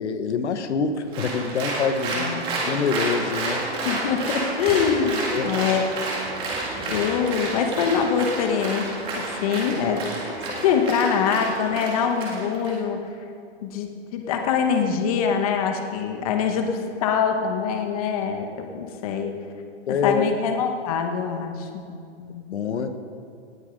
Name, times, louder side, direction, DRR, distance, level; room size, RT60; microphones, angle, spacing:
voice 1, 0.0-3.7 5.3-5.5 19.9-20.3 22.2-22.9, left 5 dB, 80° left, 8 dB, 1.2 m, -26 dB
Applause, 1.1-12.7, right 2 dB, 15° right, 2.0 m, -30 dB
voice 2, 2.2-2.6 3.8-5.9 6.9-8.9 9.1-10.0 10.6-13.1 13.6-19.3 19.9-21.9, left 7 dB, 30° left, 4 dB, 1.2 m, -24 dB
18.0 x 8.8 x 5.2 m, 2.5 s
hypercardioid pair, 170°, 34 cm